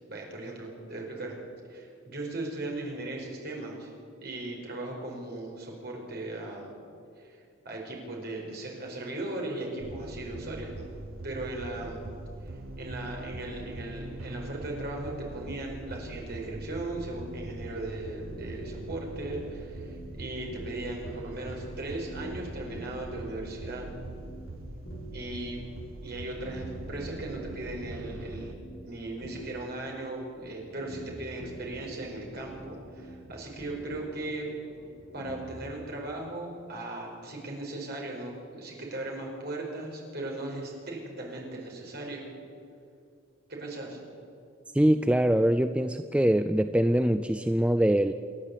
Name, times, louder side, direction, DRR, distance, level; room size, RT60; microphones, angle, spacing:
voice 1, 0.1-1.3 1.7-3.9 4.2-6.8 7.2-7.4 7.6-10.9 11.2-12.0 12.8-23.9 25.1-25.7 26.0-34.6 35.1-42.2 43.5-44.0, right 2 dB, 50° right, -1 dB, 5.1 m, -38 dB
sound 1, 9.8-28.6, right 2 dB, 85° right, 1.1 m, -42 dB
sound 2, 18.3-35.8, right 1 dB, 45° left, 2.5 m, -46 dB
voice 2, 44.7-48.1, right 1 dB, 5° right, 9 dB, 0.4 m, -23 dB
28.0 x 11.0 x 8.5 m, 2.5 s
head